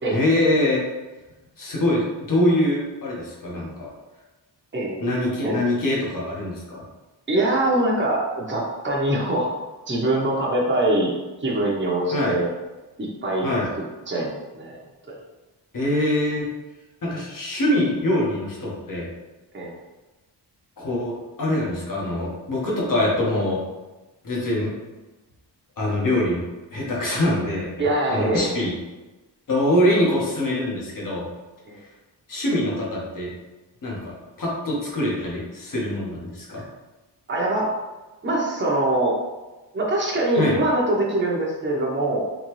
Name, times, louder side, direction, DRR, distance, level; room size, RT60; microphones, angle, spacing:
voice 1, 0.1-0.8 1.6-3.9 5.0-6.8 12.1-12.3 13.4-13.7 15.7-16.5 17.0-19.1 20.8-23.6 24.2-24.7 25.8-26.4 26.7-27.8 28.1-28.7 29.5-31.3 32.3-33.3 33.8-36.6 40.4-40.6, left 1 dB, 45° left, -4 dB, 1.4 m, -24 dB
voice 2, 4.7-5.1 5.4-5.6 7.3-9.6 9.9-11.1 11.4-12.5 13.0-13.5 14.1-15.2 19.5-19.7 27.8-28.6 31.7-31.8 36.6-36.7 37.3-37.7 38.2-39.2 39.7-42.2, right 1 dB, 25° right, -4 dB, 0.9 m, -23 dB
4.1 x 3.1 x 3.1 m, 1.1 s
wide cardioid pair, 100°, 43 cm